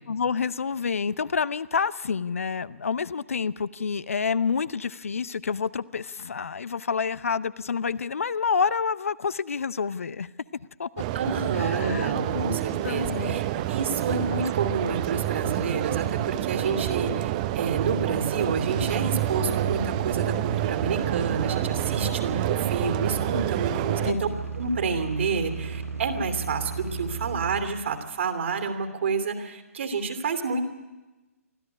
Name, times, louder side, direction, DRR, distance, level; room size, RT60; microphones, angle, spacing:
voice 1, 0.1-10.3 10.8-10.9 11.5-12.6 12.8-13.4 22.0-22.2 24.0-24.3, left 5 dB, 65° left, 18 dB, 0.6 m, -28 dB
sound 1, 11.0-24.1, right 14 dB, 30° right, 0.7 m, -28 dB
voice 2, 11.1-24.3 24.6-30.6, right 4 dB, 50° right, 8 dB, 2.8 m, -29 dB
sound 2, 18.6-27.6, right 4 dB, 75° right, 4.8 m, -35 dB
24.5 x 14.5 x 9.8 m, 1.1 s
figure-of-eight pair, 130°, 8 cm